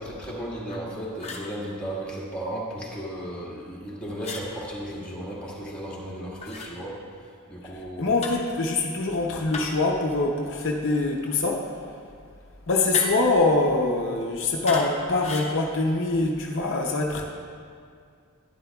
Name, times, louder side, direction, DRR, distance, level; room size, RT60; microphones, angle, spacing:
voice 1, 0.0-7.0 7.5-8.1, right 1 dB, 5° left, -7 dB, 1.7 m, -35 dB
sound 1, 0.7-0.8 1.2-1.5 4.2-4.5 6.4-6.7 8.2-8.5 9.5-9.9 12.9-13.4 14.7-14.9 15.2-15.5, left 3 dB, 30° left, 1.0 m, -34 dB
voice 2, 8.0-11.6 12.7-17.2, left 3 dB, 60° left, 1 dB, 0.7 m, -24 dB
11.5 x 10.5 x 2.3 m, 2.2 s
head